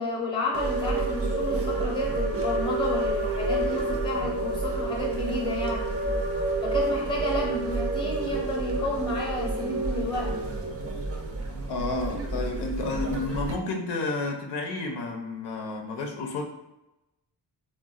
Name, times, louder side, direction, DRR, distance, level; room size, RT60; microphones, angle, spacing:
voice 1, 0.0-5.9 6.6-10.4, left 1 dB, 10° left, -1 dB, 0.7 m, -31 dB
sound 1, 0.5-13.6, right 2 dB, 40° right, 0.4 m, -29 dB
voice 2, 11.7-16.4, left 3 dB, 85° left, 2 dB, 0.6 m, -31 dB
3.8 x 2.2 x 2.3 m, 0.94 s
wide cardioid pair, 135°, 39 cm